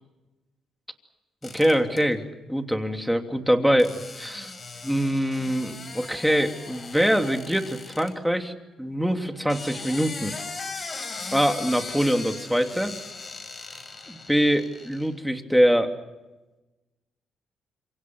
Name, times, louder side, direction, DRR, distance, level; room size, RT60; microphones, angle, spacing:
sound 1, 1.4-2.0 3.8-8.1 9.3-15.1, left 4 dB, 35° left, 6.1 m, -39 dB
voice 1, 1.4-2.2 2.5-4.5 4.8-10.3 11.3-12.9 14.1-15.9, equal, ahead, 5 dB, 3.0 m, -24 dB
27.5 x 25.5 x 6.3 m, 1.1 s
cardioid pair, 90°, 0 cm